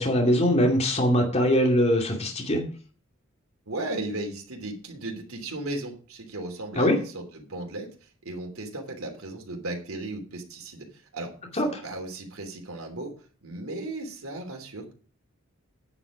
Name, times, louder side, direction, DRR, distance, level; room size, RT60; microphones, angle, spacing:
voice 1, 0.0-2.6 6.8-7.0 11.6-11.8, equal, 30° left, 1 dB, 2.5 m, -22 dB
voice 2, 3.7-13.1 13.4-14.9, right 2 dB, 80° right, 2 dB, 3.1 m, -36 dB
9.8 x 7.7 x 6.0 m, 0.41 s
head